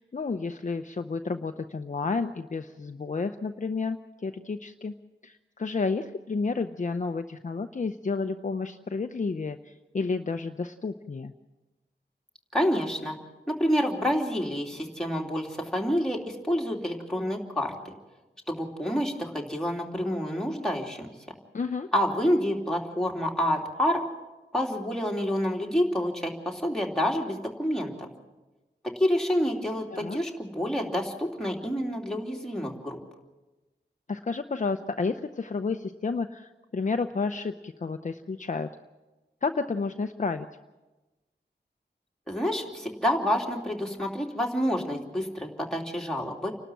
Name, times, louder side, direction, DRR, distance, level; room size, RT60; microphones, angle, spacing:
voice 1, 0.0-4.0 4.2-4.9 5.2-11.3 21.5-21.9 29.9-30.2 34.1-38.7 39.4-40.5, left 4 dB, 45° left, 6 dB, 0.7 m, -31 dB
voice 2, 12.5-13.2 13.5-17.7 18.5-21.1 21.9-24.0 24.5-28.1 29.0-33.0 42.3-46.5, equal, 5° left, -1 dB, 3.0 m, -28 dB
29.5 x 12.5 x 7.5 m, 1.1 s
wide cardioid pair, 100°, 18 cm